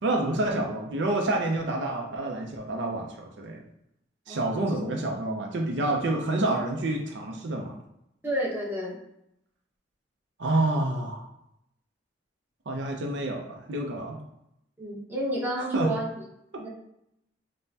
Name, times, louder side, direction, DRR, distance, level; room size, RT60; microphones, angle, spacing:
voice 1, 0.0-3.6 4.3-7.8 10.4-11.2 12.7-14.2 15.7-15.9, right 2 dB, 65° right, 2 dB, 0.5 m, -28 dB
voice 2, 4.3-4.9 8.2-9.0 14.8-16.1 16.6-16.7, right 1 dB, 10° right, -5 dB, 0.9 m, -31 dB
5.3 x 2.1 x 2.7 m, 0.79 s
head